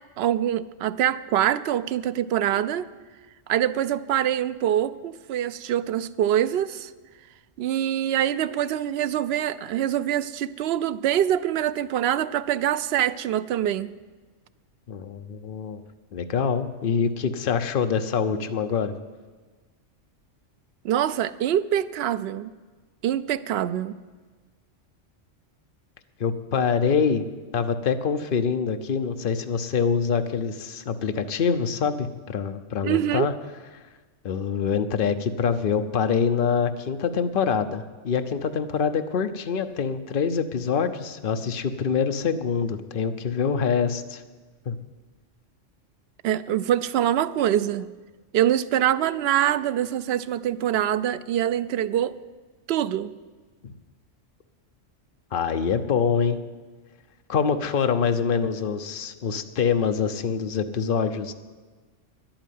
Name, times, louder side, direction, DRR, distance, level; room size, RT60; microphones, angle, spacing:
voice 1, 0.2-2.9 3.5-6.9 7.6-13.9 20.8-22.5 23.0-23.9 32.8-33.3 46.2-47.9 48.3-52.1 52.7-53.1, right 11 dB, 65° right, 13 dB, 0.7 m, -24 dB
voice 2, 14.9-15.8 16.1-18.9 26.2-27.3 27.5-33.3 34.2-44.2 44.7-44.8 55.3-56.4 57.3-61.3, left 6 dB, 50° left, 8 dB, 0.9 m, -25 dB
11.0 x 9.0 x 9.4 m, 1.3 s
omnidirectional pair, 1.3 m